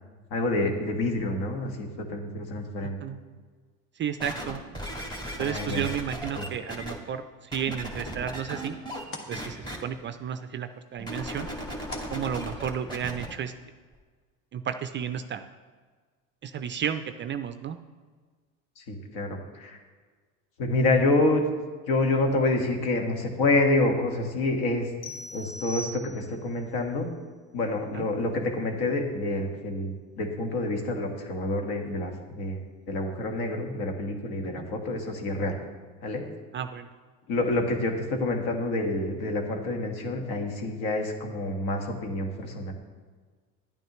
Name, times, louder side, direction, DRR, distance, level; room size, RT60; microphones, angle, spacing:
voice 1, 0.3-3.0 5.4-5.8 6.4-6.5 18.8-19.8 20.6-21.4 21.9-24.9 25.3-27.1 27.5-32.6 32.9-35.6 36.0-36.2 37.3-42.7, left 2 dB, 65° left, 3 dB, 1.6 m, -27 dB
voice 2, 2.8-3.2 4.0-4.6 5.4-8.8 9.3-11.5 12.1-13.5 14.5-15.5 16.4-17.8 27.9-28.1 34.6-34.7 36.5-36.9, right 8 dB, 30° right, 10 dB, 0.4 m, -32 dB
sound 1, 4.2-6.9 7.5-9.0 9.3-9.8 11.0-13.3 13.9-14.0, equal, 10° left, 1.9 m, -36 dB
sound 2, 7.7-13.1, left 1 dB, 30° left, 1.6 m, -49 dB
sound 3, 25.0-26.5, left 1 dB, 90° left, 0.8 m, -40 dB
10.5 x 9.1 x 3.0 m, 1.5 s
hypercardioid pair, 85°, 41 cm